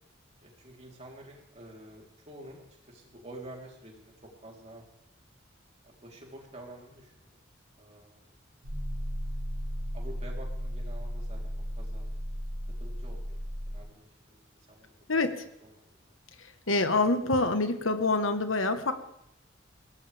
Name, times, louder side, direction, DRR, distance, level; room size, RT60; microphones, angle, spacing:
voice 1, 0.4-4.8 5.8-7.4 7.8-8.2 9.9-12.1 12.8-13.4 13.7-14.9 15.2-15.4 15.6-16.2, right 1 dB, 35° right, -1 dB, 3.8 m, -49 dB
sound 1, 8.6-13.8, equal, 75° right, 4.9 m, -35 dB
voice 2, 16.7-18.9, left 3 dB, 75° left, 8 dB, 1.5 m, -26 dB
22.0 x 17.5 x 3.5 m, 0.81 s
head